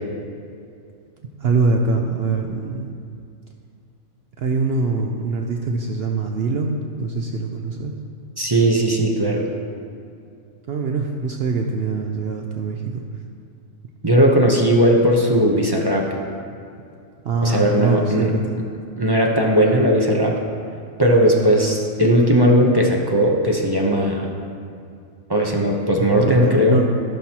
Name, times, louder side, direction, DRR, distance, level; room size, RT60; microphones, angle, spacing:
voice 1, 1.4-2.9 4.4-7.9 10.7-13.0 17.2-18.6 26.0-26.8, right 3 dB, 60° right, 2 dB, 0.7 m, -23 dB
voice 2, 8.4-9.4 14.0-16.1 17.4-18.3 19.0-20.4 21.0-24.3 25.3-26.8, equal, 25° right, -1 dB, 0.7 m, -17 dB
15.5 x 6.1 x 2.9 m, 2.4 s
omnidirectional pair, 1.4 m